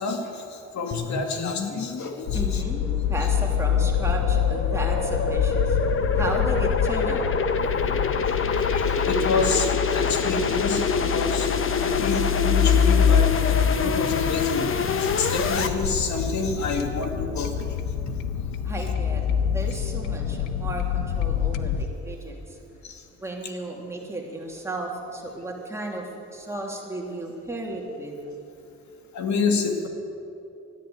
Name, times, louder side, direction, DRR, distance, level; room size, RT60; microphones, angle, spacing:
voice 1, 0.0-2.6 7.7-7.8 8.3-14.7 15.0-17.7 22.8-23.0 29.1-29.9, left 3 dB, 65° left, 4 dB, 2.1 m, -28 dB
sound 1, 0.9-15.7, left 5 dB, 45° left, 1.1 m, -27 dB
sound 2, 2.3-21.8, left 8 dB, 85° left, 0.8 m, -26 dB
voice 2, 2.3-5.8 6.1-7.3 18.6-22.6 23.1-28.2, right 2 dB, 10° right, -2 dB, 3.1 m, -34 dB
13.5 x 10.5 x 8.7 m, 2.7 s
cardioid pair, 90°, 30 cm